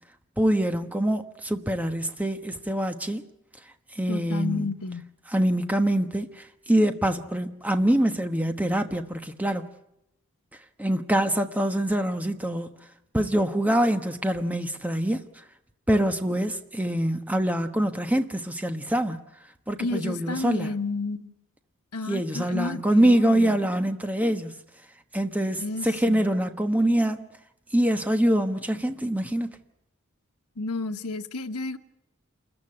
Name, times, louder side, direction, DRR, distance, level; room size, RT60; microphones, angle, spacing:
voice 1, 0.4-3.2 3.9-4.7 5.3-9.7 10.8-12.7 13.1-15.4 15.9-19.2 19.7-20.7 22.0-24.6 25.1-27.3 27.7-29.6, right 1 dB, 5° right, 1.2 m, -25 dB
voice 2, 4.1-5.1 19.8-21.3 21.9-23.6 25.6-26.3 30.6-31.8, left 3 dB, 90° left, 1.2 m, -31 dB
28.0 x 14.5 x 9.9 m
head